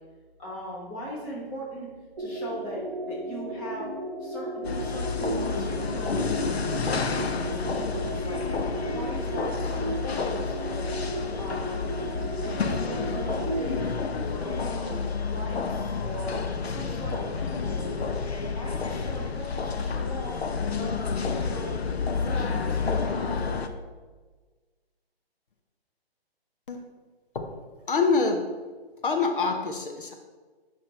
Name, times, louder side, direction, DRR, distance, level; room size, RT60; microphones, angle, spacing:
voice 1, 0.4-1.9 2.2-3.9 4.2-6.3 6.7-8.4 8.9-10.9 11.4-12.1 12.4-13.9 14.3-18.2 18.5-20.3 20.8-21.8 22.1-23.4, right 1 dB, 10° left, -5 dB, 1.2 m, -39 dB
sound 1, 2.2-14.1, right 1 dB, 10° right, 0.8 m, -34 dB
sound 2, 4.6-23.7, left 5 dB, 80° left, 0.9 m, -30 dB
voice 2, 27.9-28.4 29.0-30.1, left 4 dB, 55° left, 4 dB, 1.0 m, -25 dB
7.8 x 6.1 x 4.3 m, 1.4 s
hypercardioid pair, 165°, 31 cm